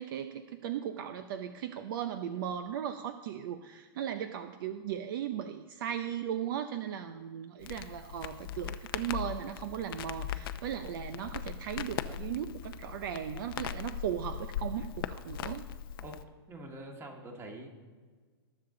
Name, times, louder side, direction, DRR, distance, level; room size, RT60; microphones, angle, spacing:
voice 1, 0.0-15.6, right 9 dB, 55° right, 10 dB, 0.6 m, -37 dB
Crackle, 7.6-16.2, left 9 dB, 60° left, 0.6 m, -39 dB
voice 2, 16.5-17.7, right 1 dB, 20° right, 2 dB, 1.8 m, -45 dB
19.5 x 7.0 x 3.9 m, 1.5 s
hypercardioid pair, 145°, 13 cm